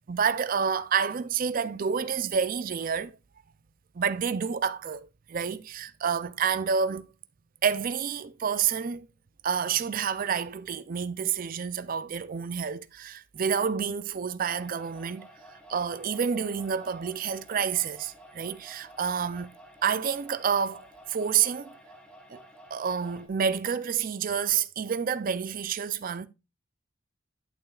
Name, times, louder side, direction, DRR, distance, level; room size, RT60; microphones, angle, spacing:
voice 1, 0.1-3.2 3.9-7.1 7.6-9.1 9.4-19.5 19.8-21.7 22.3-22.4 22.7-26.3, right 7 dB, 45° right, 0.4 m, -29 dB
sound 1, 14.5-23.3, right 1 dB, 5° left, 1.2 m, -52 dB
8.9 x 8.6 x 2.4 m
head